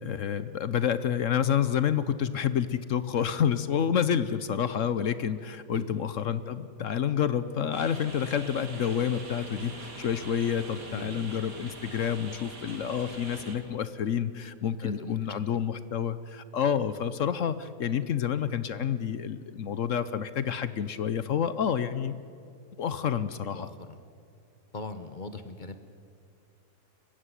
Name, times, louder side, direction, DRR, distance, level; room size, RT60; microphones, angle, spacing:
voice 1, 0.0-22.2 22.8-23.7, left 8 dB, 60° left, 13 dB, 1.0 m, -29 dB
sound 1, 7.7-13.6, right 3 dB, 80° right, 3.2 m, -43 dB
voice 2, 10.9-11.2 14.8-15.5 23.5-24.0 24.7-25.8, left 3 dB, 35° left, 10 dB, 1.1 m, -40 dB
26.0 x 15.5 x 9.8 m, 2.4 s
omnidirectional pair, 1.7 m